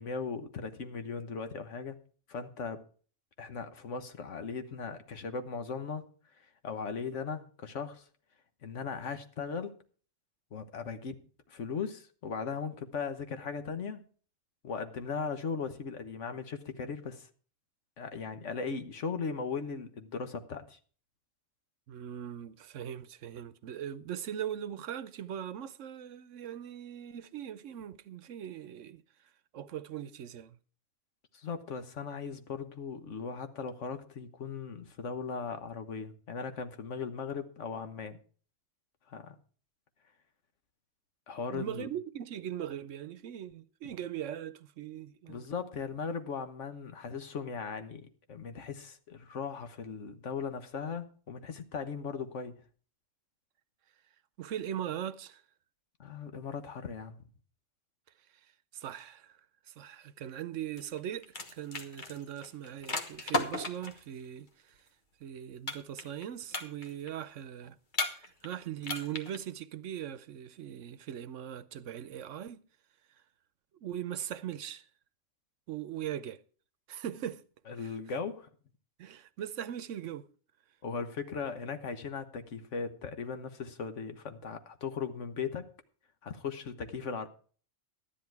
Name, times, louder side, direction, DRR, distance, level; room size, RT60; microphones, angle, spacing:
voice 1, 0.0-2.0 2.3-2.8 3.4-8.1 8.6-9.8 10.5-11.2 11.5-14.0 14.6-17.3 18.0-20.8 31.3-38.2 39.1-39.3 41.3-41.9 45.3-52.6 56.0-57.2 77.7-78.5 80.8-85.7 86.2-87.3, left 5 dB, 75° left, 1.5 m, -38 dB
voice 2, 21.9-29.0 29.5-30.6 41.5-45.5 54.4-55.4 58.7-59.4 59.7-64.8 65.2-67.8 68.1-72.6 73.8-74.9 75.7-76.4 76.9-77.4 77.8-77.9 79.0-80.3, right 10 dB, 90° right, 1.1 m, -40 dB
sound 1, 60.8-61.0 61.2-64.0 65.7-66.2 66.5-67.1 67.9-68.5 68.8-69.4, left 2 dB, 40° left, 1.5 m, -35 dB
12.5 x 10.5 x 4.6 m
omnidirectional pair, 1.3 m